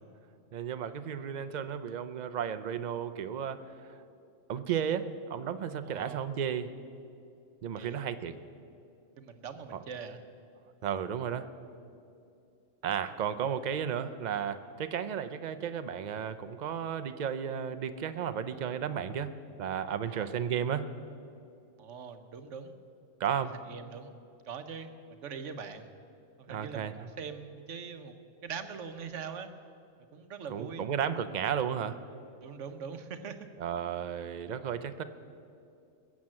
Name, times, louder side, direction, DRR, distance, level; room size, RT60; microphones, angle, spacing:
voice 1, 0.5-4.0 4.5-6.7 7.6-8.4 9.7-9.8 10.8-11.5 12.8-19.3 19.6-20.8 23.2-23.5 26.5-27.1 30.5-32.0 33.6-35.0, right 8 dB, 50° right, 11 dB, 0.6 m, -33 dB
voice 2, 5.8-6.2 7.8-8.0 9.2-10.2 20.1-20.3 21.8-22.8 23.3-24.1 24.4-25.9 26.4-29.5 30.1-30.9 32.4-33.5, right 6 dB, 75° right, 8 dB, 1.2 m, -42 dB
20.5 x 7.3 x 7.6 m, 2.6 s
omnidirectional pair, 1.3 m